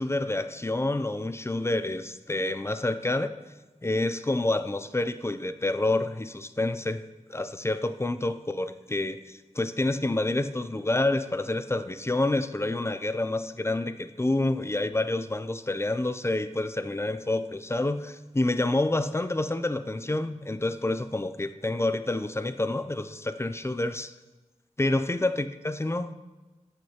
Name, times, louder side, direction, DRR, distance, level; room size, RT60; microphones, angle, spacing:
voice 1, 0.0-3.3 3.8-7.0 7.3-24.1 24.8-26.1, left 2 dB, 20° left, 11 dB, 0.4 m, -28 dB
14.0 x 6.2 x 2.9 m, 1.2 s
wide cardioid pair, 75°, 13 cm